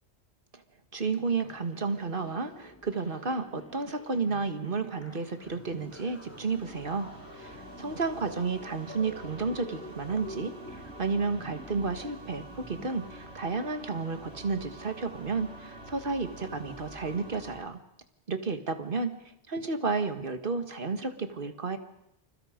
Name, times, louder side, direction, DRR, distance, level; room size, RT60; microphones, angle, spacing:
voice 1, 0.9-7.1 7.3-17.8 18.3-19.2 19.5-21.8, right 4 dB, 50° right, 7 dB, 2.0 m, -32 dB
sound 1, 1.3-12.9, left 1 dB, 15° left, 1.2 m, -49 dB
sound 2, 5.0-17.6, right 1 dB, 75° right, 6.8 m, -47 dB
29.0 x 27.5 x 5.2 m, 0.81 s
omnidirectional pair, 1.1 m